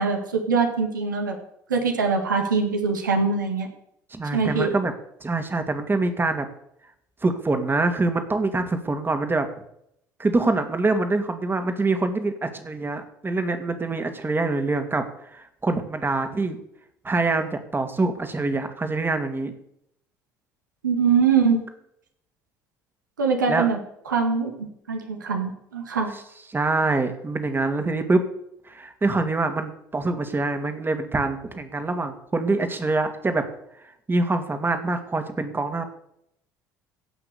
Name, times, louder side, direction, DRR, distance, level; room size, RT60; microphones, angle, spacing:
voice 1, 0.0-1.4 1.7-3.7 4.3-4.7 20.8-21.6 23.2-23.8 24.1-26.1, right 5 dB, 85° right, 3 dB, 1.7 m, -23 dB
voice 2, 4.1-4.9 5.2-6.5 7.2-9.5 10.2-16.6 17.0-19.5 23.5-23.7 26.5-28.3 28.7-33.4 34.1-35.8, right 3 dB, 20° right, 7 dB, 2.1 m, -25 dB
16.5 x 5.9 x 6.9 m, 0.76 s
figure-of-eight pair, 60°, 10 cm